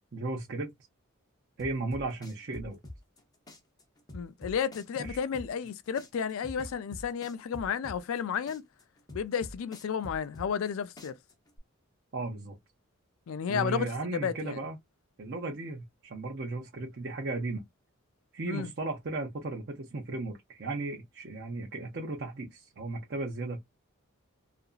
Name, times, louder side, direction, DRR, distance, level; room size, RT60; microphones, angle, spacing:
voice 1, 0.1-0.7 1.6-2.8 5.0-5.2 12.1-12.6 13.5-14.8 15.2-17.6 18.3-23.6, right 2 dB, 50° right, 0.5 m, -35 dB
sound 1, 1.6-3.2 3.5-5.7 6.0-8.2 8.5-10.7 11.0-11.6, left 1 dB, 20° left, 0.6 m, -45 dB
voice 2, 4.1-8.6 9.1-11.2 13.3-14.6 18.5-18.7, left 7 dB, 75° left, 0.3 m, -32 dB
2.8 x 2.5 x 2.3 m
head